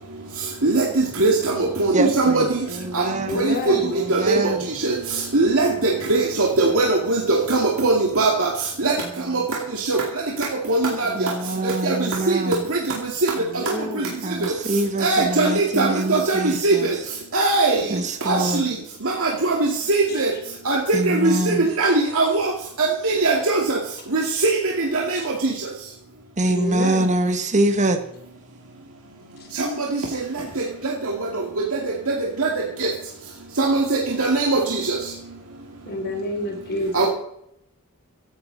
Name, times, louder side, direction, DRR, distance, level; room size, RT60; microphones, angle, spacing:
voice 1, 0.6-2.7 2.9-3.1 3.3-4.5 4.8-5.0 5.3-8.5 8.8-8.9 9.3-9.4 9.7-10.0 10.4-11.3 11.6-12.8 13.2-13.3 13.7-14.1 14.4-14.5 15.0-16.9 17.3-17.9 18.3-18.7 19.0-20.3 20.7-22.5 22.8-23.8 24.1-25.5 29.6-30.2 30.8-31.8 32.1-32.5 32.8-32.9 33.6-35.0 36.9-37.1, right 3 dB, 65° right, -1 dB, 2.4 m, -21 dB
voice 2, 1.9-3.4 4.0-4.7 9.0-9.3 11.1-12.6 14.2-16.9 17.9-18.7 20.9-21.7 26.4-28.0, right 2 dB, 35° right, 6 dB, 1.3 m, -24 dB
voice 3, 3.3-4.0 11.0-11.6 13.3-14.1 15.4-15.5 20.1-20.2 21.1-21.7 24.4-24.5 25.1-25.3 26.4-27.1 29.4-29.5 35.9-37.1, left 1 dB, 45° left, 4 dB, 3.2 m, -30 dB
15.5 x 11.5 x 4.1 m, 0.74 s
head